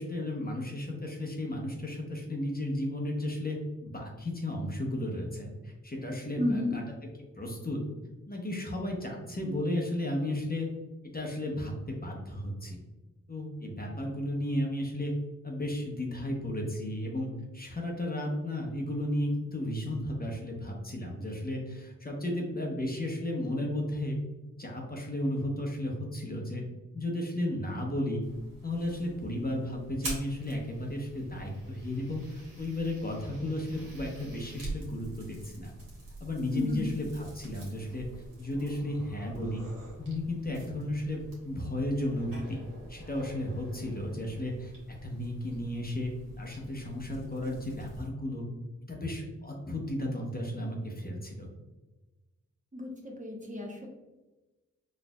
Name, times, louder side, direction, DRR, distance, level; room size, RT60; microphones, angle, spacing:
voice 1, 0.0-6.8 7.4-7.8 8.3-10.7 11.1-12.8 13.3-15.1 15.4-24.2 24.6-26.6 26.9-28.2 28.6-35.7 36.2-38.1 38.4-39.7 40.0-42.6 42.9-44.7 45.0-46.1 46.4-48.5 48.9-51.5, left 1 dB, 30° left, -1 dB, 0.8 m, -34 dB
voice 2, 6.4-6.7 36.5-36.9 52.7-53.9, left 2 dB, 25° right, -1 dB, 0.8 m, -32 dB
sound 1, 28.2-48.1, right 2 dB, 90° right, 1.3 m, -46 dB
4.2 x 2.5 x 2.3 m, 1.1 s
cardioid pair, 45°, 32 cm